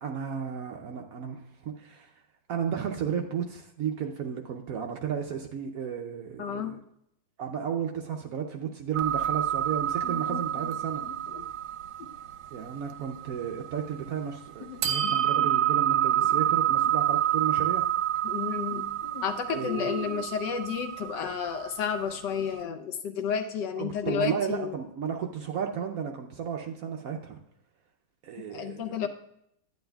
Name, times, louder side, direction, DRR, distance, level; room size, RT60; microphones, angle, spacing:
voice 1, 0.0-2.1 2.5-6.8 7.4-11.1 12.5-17.8 19.5-19.9 23.8-27.4 28.2-29.1, right 7 dB, 90° right, 2 dB, 0.7 m, -33 dB
voice 2, 6.4-6.7 10.0-10.4 11.0-11.4 12.0-12.1 14.6-16.4 18.2-24.7 28.5-29.1, left 7 dB, 70° left, 7 dB, 1.1 m, -32 dB
sound 1, 8.9-14.1 14.8-22.3, right 11 dB, 70° right, 1.2 m, -28 dB
10.5 x 9.4 x 2.3 m, 0.75 s
omnidirectional pair, 2.3 m